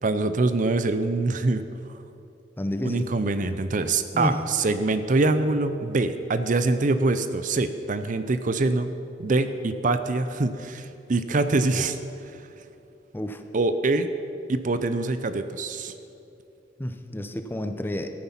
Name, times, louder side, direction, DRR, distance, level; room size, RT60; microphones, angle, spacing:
voice 1, 0.0-1.7 2.8-8.9 9.2-12.0 13.5-14.1 14.5-15.9, right 3 dB, 50° right, 11 dB, 0.6 m, -24 dB
voice 2, 2.6-3.1 4.1-4.4 13.1-13.4 16.8-18.2, left 1 dB, 10° left, 7 dB, 0.7 m, -30 dB
14.0 x 9.5 x 5.9 m, 2.7 s
head